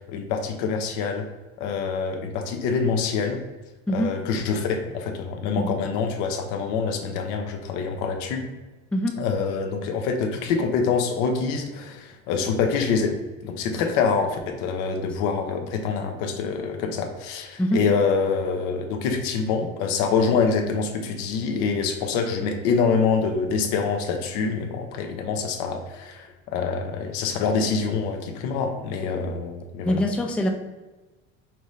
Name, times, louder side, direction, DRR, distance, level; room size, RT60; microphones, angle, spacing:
voice 1, 0.1-1.3 1.6-3.4 3.9-8.4 9.2-13.2 13.4-30.0, left 5 dB, 70° left, 5 dB, 0.8 m, -25 dB
voice 2, 29.9-30.5, equal, 5° left, 2 dB, 0.4 m, -23 dB
5.7 x 2.7 x 3.2 m, 1.2 s
supercardioid pair, 115°, 31 cm